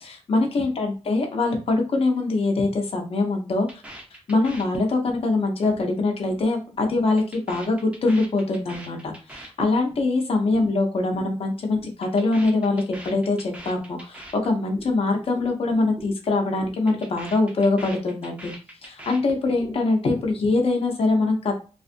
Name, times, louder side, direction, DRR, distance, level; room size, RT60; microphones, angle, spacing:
voice 1, 0.0-3.7 4.3-18.5 18.8-21.5, left 3 dB, 55° left, 2 dB, 0.6 m, -23 dB
sound 1, 3.7-5.2 5.5-5.8 6.1-6.5 6.7-10.1 10.4-10.7 11.0-11.3 11.6-14.9 15.2-15.5 15.8-16.1 16.4-19.8 20.0-20.7, right 1 dB, 10° right, 0.6 m, -41 dB
2.5 x 2.4 x 2.5 m, 0.35 s
wide cardioid pair, 115°, 11 cm